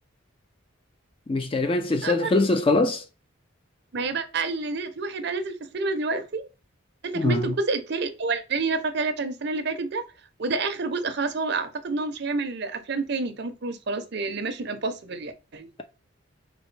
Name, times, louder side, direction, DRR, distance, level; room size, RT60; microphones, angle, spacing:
voice 1, 1.3-3.0 7.1-7.5, left 2 dB, 25° left, 0.3 m, -23 dB
voice 2, 1.9-2.3 3.9-6.5 7.1-10.0 10.4-15.7, right 3 dB, 55° right, 0.6 m, -29 dB
4.1 x 2.7 x 3.2 m
head